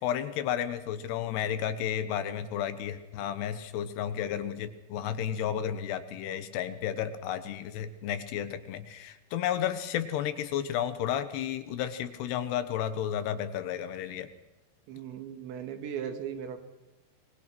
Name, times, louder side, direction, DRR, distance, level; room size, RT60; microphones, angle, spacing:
voice 1, 0.0-14.3, left 10 dB, 75° left, 11 dB, 3.1 m, -32 dB
voice 2, 14.9-16.6, right 8 dB, 90° right, 7 dB, 4.3 m, -37 dB
26.5 x 20.5 x 6.1 m, 1.0 s
omnidirectional pair, 5.1 m